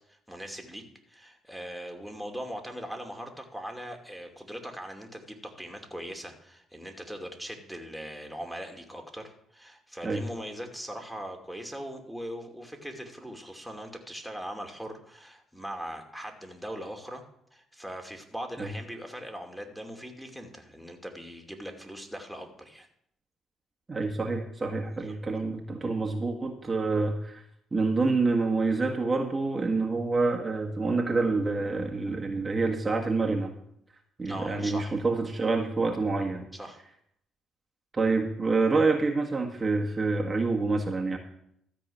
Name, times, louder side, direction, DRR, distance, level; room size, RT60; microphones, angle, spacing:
voice 1, 0.1-17.2 17.5-22.9 24.9-25.1 34.2-35.0 36.5-36.8, equal, ahead, 3 dB, 2.5 m, -40 dB
voice 2, 23.9-27.4 27.7-33.5 34.2-36.5 37.9-41.2, right 3 dB, 30° right, 1 dB, 1.8 m, -27 dB
13.5 x 4.8 x 8.7 m, 0.73 s
supercardioid pair, 60°, 0 cm